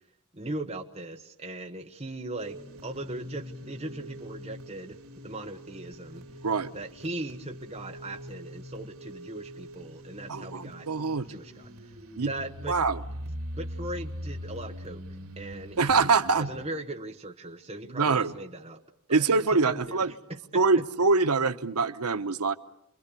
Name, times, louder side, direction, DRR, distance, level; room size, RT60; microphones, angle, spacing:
voice 1, 0.3-5.0 5.2-6.2 6.7-10.9 11.3-11.9 12.2-12.8 13.5-15.0 15.4-16.1 16.4-18.8 19.1-19.3 19.5-20.6, right 2 dB, 25° right, 1.1 m, -39 dB
sound 1, 2.4-16.7, equal, 70° right, 3.0 m, -42 dB
voice 2, 10.3-11.3 12.2-12.3 12.7-13.0 15.8-16.5 18.0-18.3 19.1-20.1 20.5-22.5, right 4 dB, 90° right, 1.0 m, -24 dB
29.5 x 23.0 x 8.4 m
head